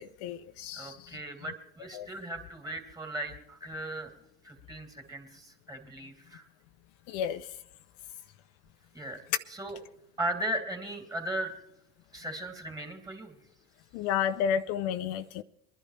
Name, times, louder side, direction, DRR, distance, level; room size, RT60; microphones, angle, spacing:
voice 1, 0.0-0.9 1.9-2.1 7.1-7.5 13.9-15.4, left 8 dB, 55° left, 0.6 m, -31 dB
voice 2, 0.7-4.1 4.4-6.4 8.9-9.2 9.5-9.8 10.2-11.5 12.1-13.3, right 1 dB, 15° right, 2.9 m, -37 dB
22.5 x 11.0 x 3.3 m
hypercardioid pair, 95°, 29 cm